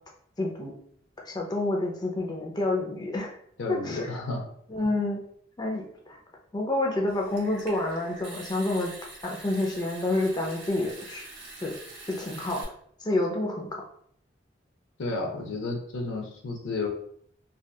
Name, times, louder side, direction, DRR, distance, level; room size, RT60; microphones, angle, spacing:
voice 1, 0.4-0.7 1.2-3.3 3.7-4.2 4.7-5.2 5.6-6.2 6.5-8.9 9.2-11.2 11.6-11.7 12.1-12.6 13.0-13.7, left 2 dB, 20° left, 0 dB, 0.3 m, -28 dB
voice 2, 3.6-4.4 15.0-16.9, left 3 dB, 80° left, 2 dB, 0.5 m, -32 dB
Water tap faucet / Sink (filling or washing) / Trickle dribble, 7.1-12.6, right 2 dB, 55° right, 0.8 m, -45 dB
2.7 x 2.2 x 2.2 m, 0.64 s
head